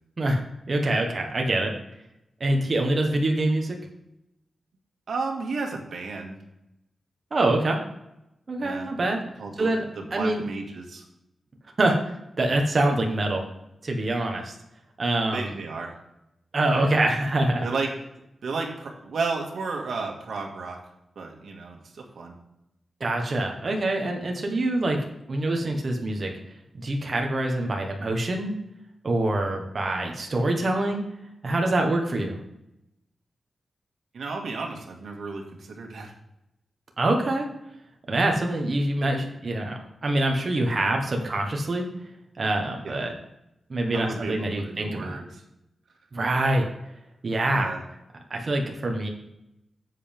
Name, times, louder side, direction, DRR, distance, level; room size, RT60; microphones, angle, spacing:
voice 1, 0.7-1.7 2.4-3.8 7.3-7.8 8.5-9.2 9.6-9.8 10.1-10.4 11.8-12.0 12.4-13.4 13.8-14.5 15.0-15.5 16.5-17.6 23.0-25.0 25.3-26.3 26.7-28.5 29.0-31.0 31.4-32.4 37.0-37.5 38.1-41.9 42.4-43.1 43.7-45.2 46.1-46.6 47.2-47.7 48.3-49.1, right 2 dB, 40° right, 2 dB, 1.4 m, -25 dB
voice 2, 5.1-6.4 8.6-8.9 9.4-11.0 15.3-16.0 16.7-17.0 17.6-17.9 18.4-20.8 21.2-22.3 34.1-36.1 42.8-43.1 43.9-45.4 47.5-47.8, right 4 dB, 75° right, 1 dB, 1.9 m, -33 dB
9.8 x 7.6 x 3.5 m, 0.85 s
wide cardioid pair, 150°, 0 cm